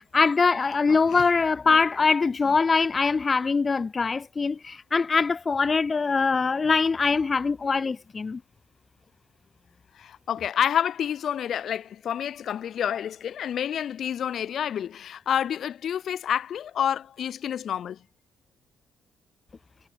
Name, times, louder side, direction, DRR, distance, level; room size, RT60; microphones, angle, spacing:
voice 1, 0.0-8.4, left 4 dB, 35° left, 2.7 m, -23 dB
voice 2, 0.9-1.2 10.0-18.0, left 9 dB, 65° left, 2.5 m, -29 dB
cardioid pair, 90°, 0 cm